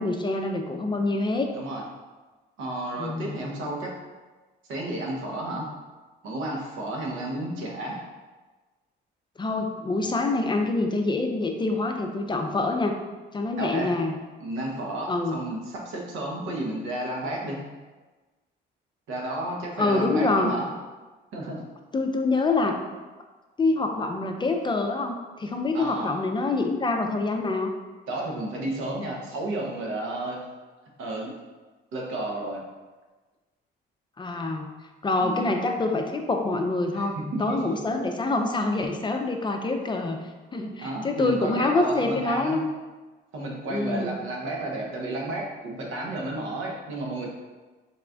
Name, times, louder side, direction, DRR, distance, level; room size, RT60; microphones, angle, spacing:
voice 1, 0.0-1.5 3.0-3.4 9.4-13.0 13.3-14.1 15.1-15.4 19.8-20.5 21.9-22.8 23.6-27.7 34.2-34.7 35.0-40.2 40.5-42.6 43.7-44.1, left 3 dB, 25° left, 4 dB, 0.4 m, -26 dB
voice 2, 1.5-1.8 2.6-3.9 4.7-5.7 6.2-8.0 13.6-14.0 14.4-17.7 19.1-20.7 21.3-21.6 25.7-26.1 28.1-30.5 31.0-31.3 31.9-32.6 35.2-35.5 36.9-37.8 40.8-42.7 43.3-47.3, right 1 dB, 85° right, -1 dB, 0.8 m, -32 dB
4.1 x 2.4 x 3.3 m, 1.3 s
cardioid pair, 90°, 20 cm